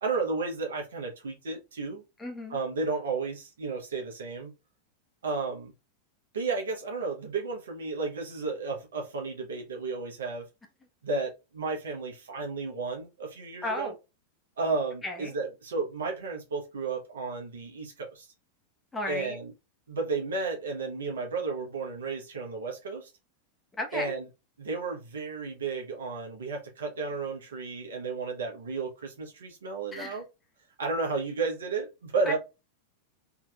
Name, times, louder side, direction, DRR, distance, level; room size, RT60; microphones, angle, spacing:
voice 1, 0.0-2.0 2.5-4.5 5.2-5.7 6.3-10.4 11.0-13.9 14.6-18.3 19.1-19.5 19.9-23.1 23.9-24.2 24.6-30.2 30.8-32.4, right 4 dB, 65° right, 1.2 m, -33 dB
voice 2, 2.2-2.6 13.6-13.9 15.0-15.3 18.9-19.4 23.8-24.1 29.9-30.2 32.3-32.4, left 1 dB, 15° left, 1.0 m, -34 dB
3.6 x 3.0 x 2.4 m
figure-of-eight pair, 90°, 0 cm